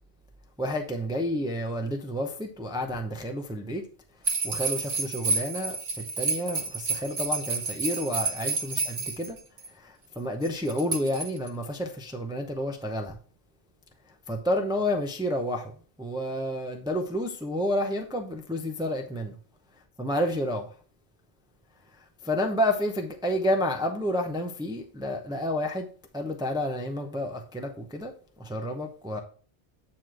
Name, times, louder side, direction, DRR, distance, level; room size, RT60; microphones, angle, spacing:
voice 1, 0.6-3.8 4.4-9.4 9.7-13.2 14.3-15.7 16.0-19.4 20.0-20.7 22.2-25.9 26.1-28.1 28.4-29.2, left 1 dB, 5° right, 0.6 m, -30 dB
sound 1, 4.2-9.7 10.4-11.6, right 3 dB, 70° right, 1.6 m, -30 dB
9.0 x 3.1 x 6.2 m
omnidirectional pair, 1.1 m